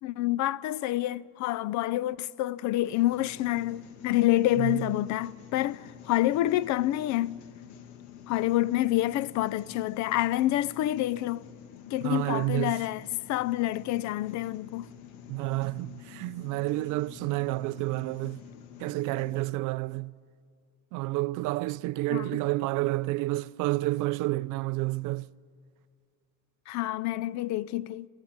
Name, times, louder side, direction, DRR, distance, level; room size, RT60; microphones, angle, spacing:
voice 1, 0.0-7.4 8.3-11.4 11.9-14.9 22.1-22.3 26.7-28.1, left 15 dB, 50° left, 0.5 m, -28 dB
sound 1, 2.8-19.4, left 9 dB, 85° left, 1.6 m, -48 dB
voice 2, 4.6-4.9 12.0-12.8 15.3-18.4 18.8-20.1 20.9-25.3, right 20 dB, 60° right, 0.5 m, -30 dB
18.0 x 15.5 x 9.6 m
cardioid pair, 120°, 36 cm